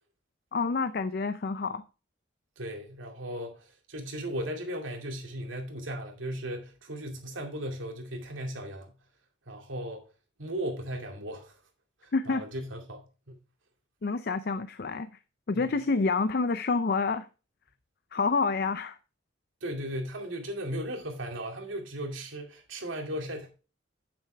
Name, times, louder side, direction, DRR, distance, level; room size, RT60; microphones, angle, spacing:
voice 1, 0.5-1.8 12.1-12.4 14.0-15.1 15.5-17.3 18.1-19.0, left 4 dB, 50° left, 0.5 m, -28 dB
voice 2, 2.6-8.9 9.5-10.0 10.4-11.6 12.0-13.4 15.5-15.7 19.6-23.6, equal, 80° right, 2.4 m, -37 dB
8.7 x 7.4 x 3.3 m
head